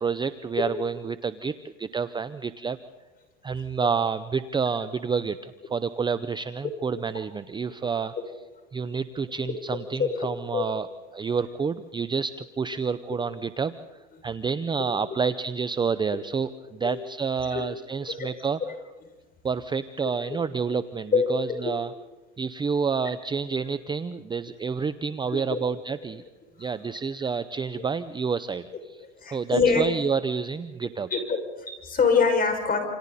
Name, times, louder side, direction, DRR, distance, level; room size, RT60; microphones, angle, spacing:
voice 1, 0.0-2.8 3.4-8.1 8.7-13.7 14.2-18.6 19.4-21.9 22.4-26.2 26.6-31.1, right 5 dB, 15° right, 13 dB, 0.7 m, -29 dB
voice 2, 21.1-21.8 25.3-25.6 27.8-27.9 29.0-29.9 31.1-32.8, left 5 dB, 25° left, 5 dB, 6.2 m, -25 dB
28.5 x 27.5 x 4.2 m, 1.1 s
supercardioid pair, 110°, 33 cm